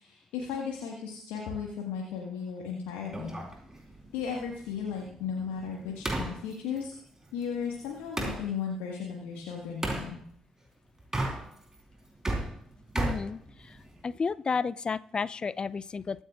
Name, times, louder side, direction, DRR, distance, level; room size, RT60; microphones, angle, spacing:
voice 1, 0.0-3.4 4.1-6.9 7.3-10.2, left 6 dB, 65° left, -1 dB, 1.7 m, -35 dB
sound 1, 3.1-8.4 9.8-10.1 11.0-11.8 12.1-14.0, right 1 dB, 20° right, 3.9 m, -35 dB
voice 2, 12.9-13.8 14.0-16.2, left 5 dB, 35° left, 19 dB, 0.4 m, -32 dB
23.0 x 9.9 x 2.5 m, 0.65 s
figure-of-eight pair, 40°, 3 cm